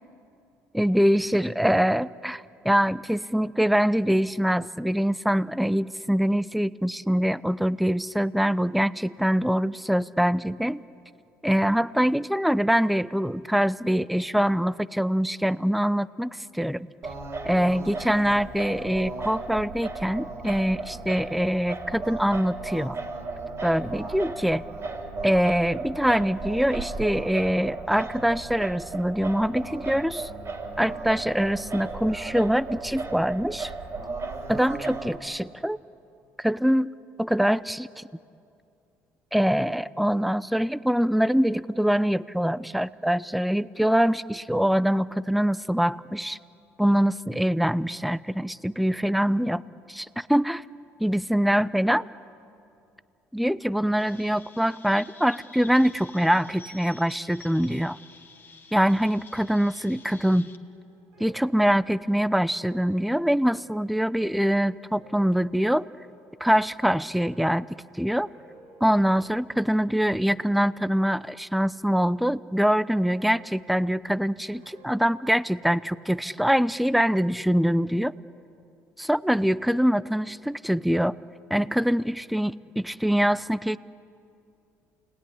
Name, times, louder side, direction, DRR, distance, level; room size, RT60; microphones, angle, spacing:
voice 1, 0.7-10.8 11.4-16.9 17.4-23.0 23.6-24.6 25.2-30.3 30.8-33.7 34.5-35.8 36.4-36.9 37.2-38.1 39.3-46.4 46.8-49.6 49.9-50.6 51.0-52.1 53.3-58.0 58.7-60.5 61.2-65.9 66.4-67.7 67.9-68.3 68.8-78.1 79.0-81.1 81.5-83.8, equal, ahead, 17 dB, 0.6 m, -24 dB
Singing, 17.0-35.2, right 3 dB, 45° right, 3.9 m, -35 dB
Chirp tweet, 54.0-60.6, left 3 dB, 30° left, 2.0 m, -50 dB
sound 1, 60.3-71.8 72.1-72.7 73.1-78.5, right 3 dB, 85° right, 6.5 m, -55 dB
29.0 x 20.0 x 9.9 m, 2.6 s
hypercardioid pair, 65°, 7 cm